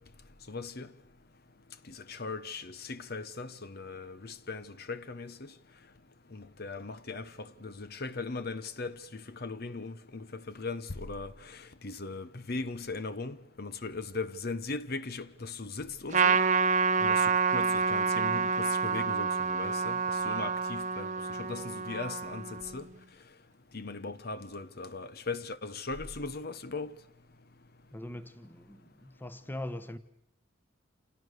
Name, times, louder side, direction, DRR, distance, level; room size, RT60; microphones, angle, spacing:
voice 1, 0.5-0.9 1.9-5.5 6.3-16.4 17.0-22.9 23.7-26.9, left 3 dB, 50° left, 1.0 m, -39 dB
Trumpet, 16.1-22.8, right 5 dB, 40° right, 1.1 m, -28 dB
voice 2, 27.9-30.0, left 1 dB, 10° left, 1.2 m, -41 dB
29.0 x 28.5 x 6.6 m
head